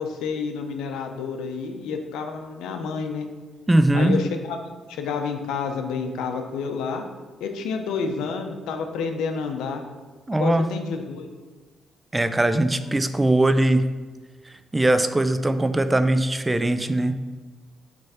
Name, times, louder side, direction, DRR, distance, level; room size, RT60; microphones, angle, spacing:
voice 1, 0.0-3.3 3.9-7.0 7.4-9.8 10.4-11.3, left 5 dB, 90° left, 5 dB, 0.7 m, -29 dB
voice 2, 3.7-4.2 10.3-10.7 12.1-13.9 14.7-17.2, right 1 dB, 15° right, 10 dB, 0.4 m, -20 dB
6.2 x 3.4 x 5.6 m, 1.3 s
cardioid pair, 90°, 0 cm